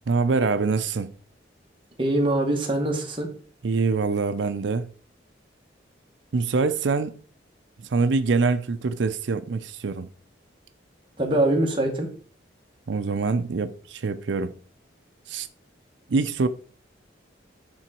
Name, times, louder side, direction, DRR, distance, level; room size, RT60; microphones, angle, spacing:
voice 1, 0.1-1.1 3.6-4.9 6.3-7.2 7.9-10.1 12.9-14.5 15.3-15.5 16.1-16.5, right 4 dB, 75° right, 0.5 m, -24 dB
voice 2, 2.0-3.3 11.2-12.1, right 1 dB, 25° right, 1.6 m, -23 dB
8.9 x 3.8 x 4.4 m
head